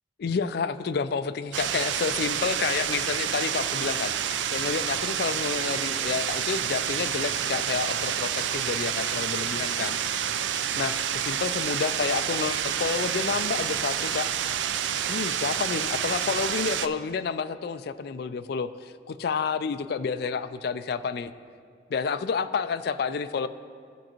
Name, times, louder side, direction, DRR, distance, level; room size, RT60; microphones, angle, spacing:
voice 1, 0.2-10.0 10.8-14.3 15.1-21.3 21.9-23.5, left 5 dB, 60° left, 11 dB, 0.4 m, -29 dB
sound 1, 1.5-16.9, right 9 dB, 85° right, 0.4 m, -28 dB
16.0 x 6.2 x 3.0 m, 2.2 s
head